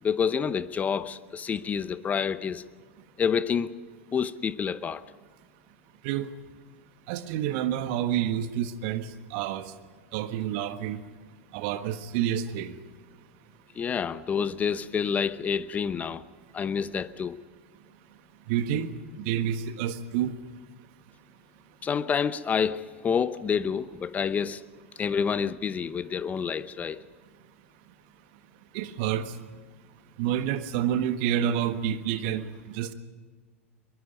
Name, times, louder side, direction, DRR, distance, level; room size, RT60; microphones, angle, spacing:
voice 1, 0.0-2.6 3.2-3.7 4.1-5.0 13.7-16.2 16.5-17.3 21.8-24.6 25.0-27.0, left 6 dB, 20° left, 16 dB, 0.8 m, -28 dB
voice 2, 7.1-9.0 9.3-9.7 10.1-11.0 11.5-12.7 18.5-18.9 19.2-20.3 28.7-29.3 30.2-32.5 32.7-32.9, right 10 dB, 50° right, 10 dB, 1.5 m, -28 dB
22.5 x 22.5 x 5.3 m, 1.5 s
figure-of-eight pair, 90°, 7 cm